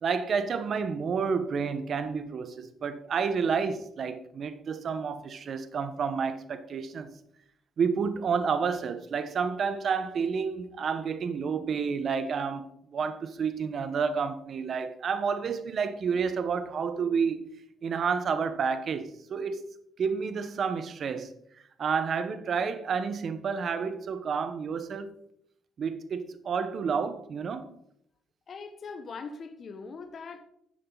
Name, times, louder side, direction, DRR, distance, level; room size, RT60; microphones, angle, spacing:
voice 1, 0.0-7.1 7.8-17.4 17.8-19.7 20.0-21.3 21.8-25.1 25.8-27.7, right 6 dB, 55° right, 1.2 m, -30 dB
voice 2, 28.5-30.4, left 4 dB, 50° left, 1.1 m, -41 dB
13.0 x 7.7 x 4.1 m
cardioid pair, 90°, 0 cm